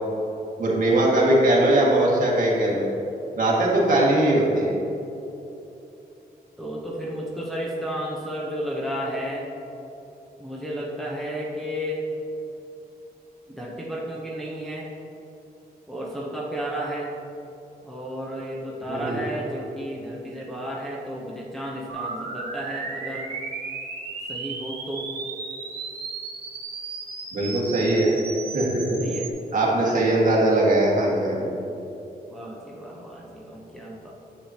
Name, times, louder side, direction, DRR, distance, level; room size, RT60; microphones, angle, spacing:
voice 1, 0.6-2.9 3.4-4.7 18.9-19.2 27.3-28.1 28.5-29.0 29.5-31.5, right 1 dB, 55° right, -4 dB, 1.7 m, -20 dB
voice 2, 6.6-9.5 10.4-12.1 13.5-14.9 15.9-17.1 17.8-23.3 24.3-25.1 29.0-29.3 29.8-30.3 32.3-34.1, equal, ahead, -4 dB, 0.8 m, -32 dB
sound 1, 21.9-29.3, right 4 dB, 90° right, 1.5 m, -35 dB
10.0 x 7.5 x 2.9 m, 2.9 s
wide cardioid pair, 170°, 16 cm